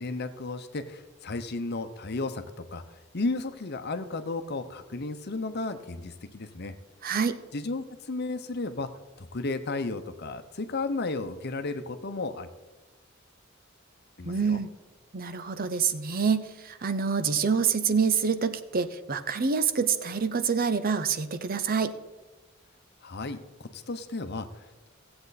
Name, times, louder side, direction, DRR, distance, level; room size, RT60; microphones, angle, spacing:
voice 1, 0.0-6.7 7.5-8.9 9.2-12.5 14.2-14.6 23.0-24.9, left 3 dB, 55° left, 9 dB, 0.8 m, -34 dB
voice 2, 7.0-7.3 14.2-14.7 15.1-21.9, right 6 dB, 45° right, 11 dB, 0.7 m, -26 dB
16.0 x 7.8 x 4.1 m, 1.1 s
head